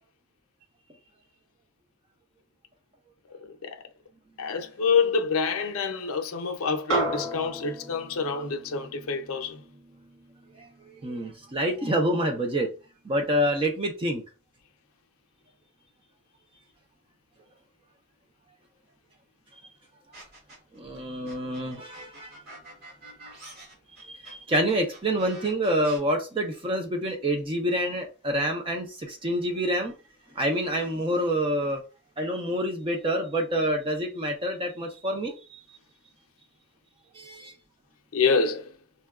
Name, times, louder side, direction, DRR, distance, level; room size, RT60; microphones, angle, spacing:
voice 1, 3.4-3.8 4.4-9.6 38.1-38.7, left 5 dB, 65° left, 0.5 m, -27 dB
sound 1, 6.9-11.5, right 1 dB, 70° right, 1.0 m, -34 dB
voice 2, 10.6-12.7 13.1-14.2 20.8-22.3 24.1-29.9 30.4-31.8 32.2-35.6 37.1-37.5, equal, 25° right, 0.4 m, -27 dB
sound 2, 20.1-20.8 21.2-26.0, right 2 dB, 45° right, 1.7 m, -46 dB
5.4 x 2.2 x 2.3 m
head